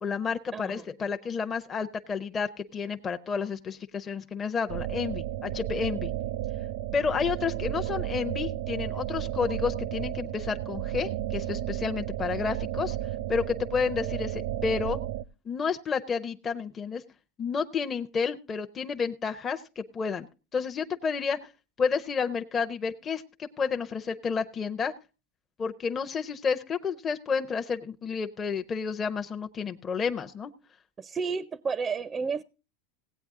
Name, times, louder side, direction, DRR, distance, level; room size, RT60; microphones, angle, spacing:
voice 1, 0.0-6.1 6.9-13.0 13.3-15.0 15.5-17.0 17.4-20.3 20.5-21.5 21.8-24.9 25.6-30.5, left 5 dB, 25° left, 0.6 m, -30 dB
voice 2, 0.5-0.9 31.0-32.4, right 5 dB, 20° right, 0.5 m, -31 dB
sound 1, 4.7-15.2, right 13 dB, 70° right, 0.5 m, -33 dB
17.0 x 8.8 x 3.6 m
supercardioid pair, 130°, 0 cm